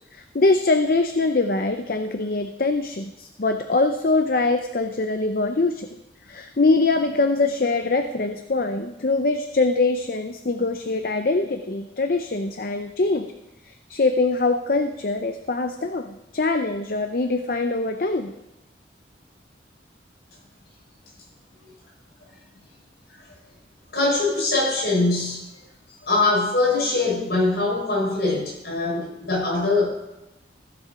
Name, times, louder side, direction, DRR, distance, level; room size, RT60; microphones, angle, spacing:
voice 1, 0.1-5.9 6.3-13.3 13.7-18.3, left 3 dB, 55° left, 7 dB, 0.6 m, -23 dB
voice 2, 23.9-25.4 26.0-29.9, left 2 dB, 70° left, -2 dB, 5.2 m, -22 dB
15.5 x 7.4 x 5.1 m, 0.93 s
head